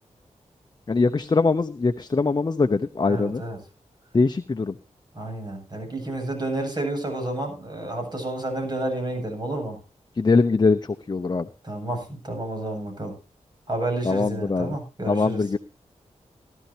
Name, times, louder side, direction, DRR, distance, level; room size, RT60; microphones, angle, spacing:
voice 1, 0.9-3.4 4.1-4.7 10.2-11.5 14.0-14.7 15.0-15.6, left 4 dB, 35° left, 8 dB, 0.9 m, -22 dB
voice 2, 3.1-3.6 5.1-9.8 11.6-13.1 13.7-15.4, right 2 dB, 35° right, 4 dB, 7.9 m, -30 dB
18.0 x 13.0 x 2.9 m, 0.30 s
wide cardioid pair, 90°, 13 cm